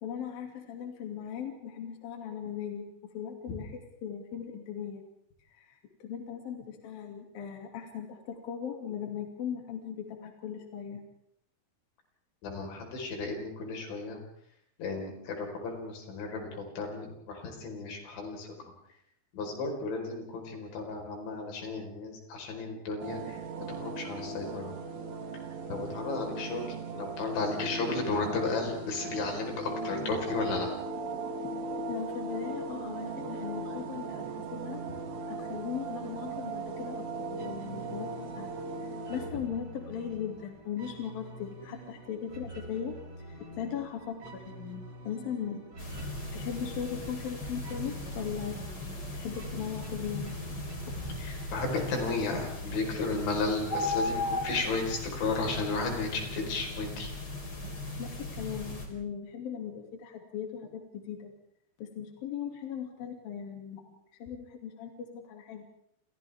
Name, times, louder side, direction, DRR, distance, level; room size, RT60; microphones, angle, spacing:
voice 1, 0.0-3.7 4.0-5.0 5.6-11.0 31.9-34.8 35.3-42.9 43.3-45.6 46.3-48.6 49.1-50.6 58.0-61.3 61.8-65.6, left 8 dB, 55° left, 2 dB, 4.1 m, -38 dB
voice 2, 12.4-14.2 14.8-18.6 19.3-23.4 23.7-24.7 25.7-30.7 51.2-57.1, left 3 dB, 85° left, 2 dB, 6.9 m, -34 dB
sound 1, 23.0-39.3, right 2 dB, 60° right, 3.8 m, -38 dB
sound 2, 37.3-52.8, right 1 dB, 25° right, 3.0 m, -46 dB
sound 3, 45.8-58.9, left 1 dB, 20° left, 4.3 m, -37 dB
29.5 x 29.0 x 3.6 m, 0.73 s
omnidirectional pair, 5.1 m